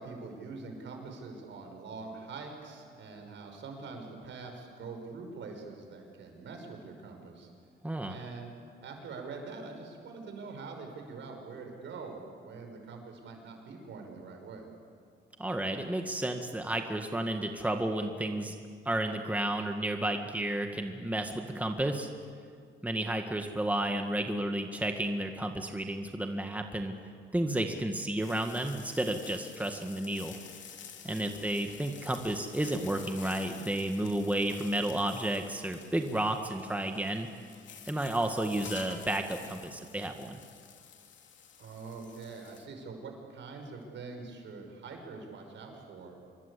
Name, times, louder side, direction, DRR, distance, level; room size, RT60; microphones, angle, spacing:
voice 1, 0.0-7.5 8.1-8.5 8.8-14.7 31.0-31.6 41.6-46.2, right 4 dB, 70° right, 3 dB, 5.7 m, -44 dB
voice 2, 7.8-8.2 15.4-18.6 18.9-22.1 22.8-26.9 27.3-30.4 31.0-37.3 37.9-40.4, right 1 dB, 5° right, 4 dB, 1.8 m, -32 dB
sound 1, 28.2-42.7, left 7 dB, 70° left, 2.9 m, -50 dB
26.0 x 23.0 x 8.5 m, 2.2 s
cardioid pair, 90°, 20 cm